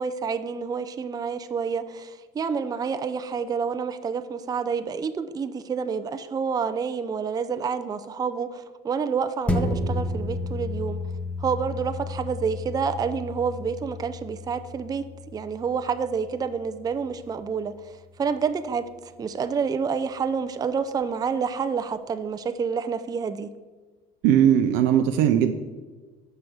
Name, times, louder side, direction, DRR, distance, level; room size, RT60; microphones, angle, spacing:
voice 1, 0.0-11.0 11.4-15.1 15.3-17.8 18.2-18.9 19.2-23.5, right 6 dB, 20° right, 0.4 m, -28 dB
sound 1, 9.5-18.3 18.7-18.8, left 2 dB, 5° left, 0.8 m, -33 dB
voice 2, 24.2-25.5, right 10 dB, 75° right, 0.5 m, -19 dB
6.3 x 5.5 x 4.6 m
supercardioid pair, 95°, 19 cm